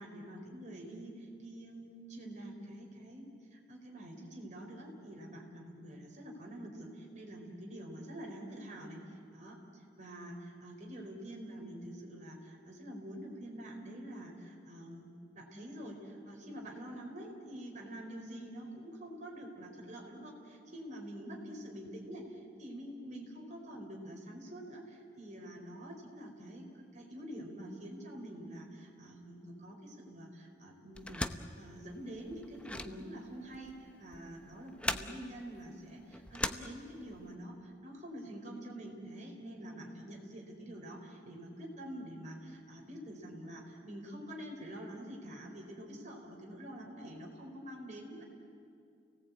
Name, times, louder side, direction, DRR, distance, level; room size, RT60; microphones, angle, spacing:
voice 1, 0.0-9.0 9.3-15.1 15.3-26.7 26.9-48.2, right 1 dB, 40° right, 0 dB, 4.6 m, -46 dB
sound 1, 30.9-37.3, left 1 dB, 5° left, 0.8 m, -40 dB
30.0 x 18.5 x 8.5 m, 2.5 s
head